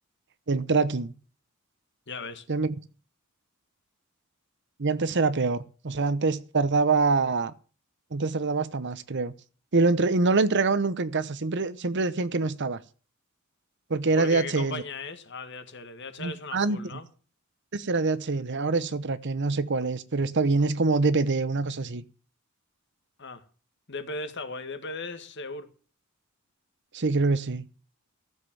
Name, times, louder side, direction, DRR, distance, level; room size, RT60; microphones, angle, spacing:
voice 1, 0.5-1.1 2.5-2.7 4.8-7.5 8.1-9.3 9.7-12.8 13.9-14.8 16.2-17.0 17.7-22.0 26.9-27.7, right 3 dB, 60° right, 0.9 m, -25 dB
voice 2, 2.1-2.5 14.2-17.1 23.2-23.4 23.9-25.7, left 3 dB, 60° left, 1.8 m, -37 dB
14.5 x 7.5 x 7.3 m
head